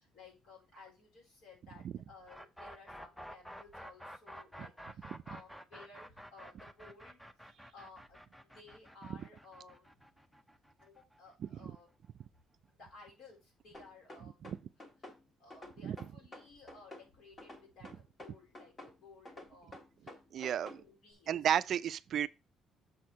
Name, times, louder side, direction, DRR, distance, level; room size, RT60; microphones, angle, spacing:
voice 1, 0.0-7.2 7.7-10.1 10.8-11.9 12.8-14.4 15.4-21.4, left 3 dB, 75° left, 4.0 m, -57 dB
sound 1, 2.3-12.1, equal, 5° left, 0.6 m, -51 dB
voice 2, 11.4-11.8 14.2-14.6 15.8-16.0 20.3-20.8 21.3-22.3, right 9 dB, 55° right, 0.3 m, -33 dB
sound 2, 13.7-15.2 15.5-17.1 17.4-19.0 19.3-20.8, left 1 dB, 25° left, 1.5 m, -50 dB
6.9 x 4.3 x 4.7 m
cardioid pair, 125°, 0 cm